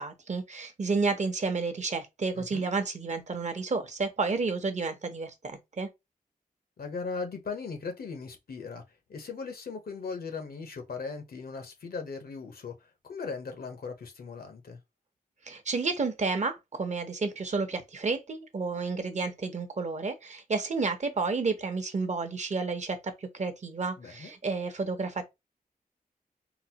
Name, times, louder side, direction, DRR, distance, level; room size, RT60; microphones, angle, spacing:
voice 1, 0.0-5.9 15.5-25.2, right 4 dB, 50° right, 0.7 m, -31 dB
voice 2, 2.3-2.7 6.8-8.8 9.1-14.8 24.0-24.3, left 4 dB, 80° left, 0.8 m, -38 dB
3.9 x 2.0 x 2.8 m
wide cardioid pair, 90°, 15 cm